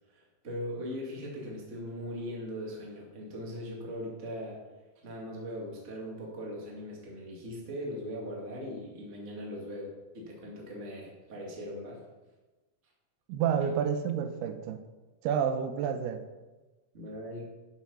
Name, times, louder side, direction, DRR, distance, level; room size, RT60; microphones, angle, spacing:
voice 1, 0.1-4.6 5.0-12.0 16.9-17.5, equal, 25° right, -2 dB, 1.8 m, -40 dB
voice 2, 13.3-14.8 15.2-16.2, right 8 dB, 90° right, 8 dB, 2.8 m, -29 dB
11.0 x 5.9 x 5.5 m, 1.2 s
omnidirectional pair, 4.5 m